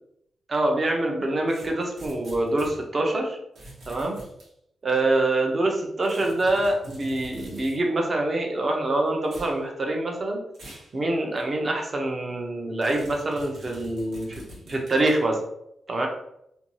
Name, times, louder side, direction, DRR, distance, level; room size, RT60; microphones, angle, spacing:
voice 1, 0.5-3.4 3.9-4.2 4.8-10.4 10.9-14.4 14.7-15.4 15.9-16.1, right 2 dB, 30° right, 1 dB, 0.5 m, -25 dB
sound 1, 1.5-2.8 3.6-4.5 6.0-7.8 9.2-9.6 10.5-10.9 11.4-11.5 12.8-15.2, right 1 dB, 65° right, 0.9 m, -44 dB
2.6 x 2.2 x 3.0 m, 0.77 s
wide cardioid pair, 180°, 0 cm